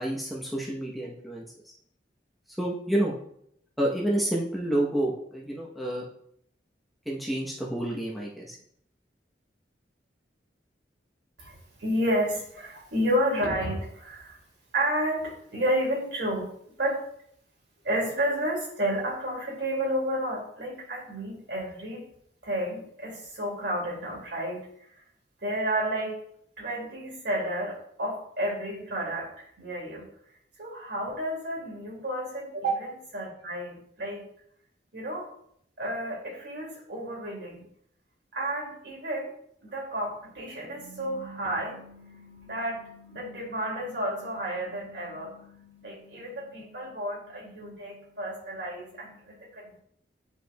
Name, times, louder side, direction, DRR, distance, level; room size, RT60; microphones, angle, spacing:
voice 1, 0.0-1.7 2.6-3.1 3.8-6.0 7.1-8.6, right 1 dB, ahead, -4 dB, 0.9 m, -29 dB
voice 2, 11.4-14.4 14.7-16.5 16.8-17.0 17.8-22.1 22.4-24.7 25.4-26.2 26.6-30.1 30.6-34.3 34.9-35.3 35.8-37.6 38.3-39.3 39.6-49.8, right 1 dB, 75° right, -3 dB, 2.4 m, -31 dB
9.7 x 4.6 x 2.3 m, 0.69 s
head